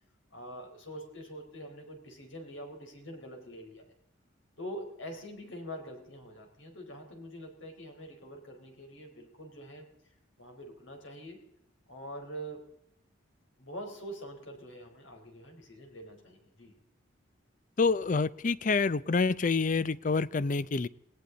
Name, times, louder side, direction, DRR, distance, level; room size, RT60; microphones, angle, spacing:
voice 1, 0.3-3.9 4.6-9.9 10.4-11.4 11.9-12.7 13.6-16.8, equal, 70° left, 3 dB, 4.1 m, -45 dB
voice 2, 17.8-20.9, left 4 dB, 40° left, 17 dB, 0.5 m, -27 dB
19.0 x 18.5 x 4.0 m, 0.77 s
head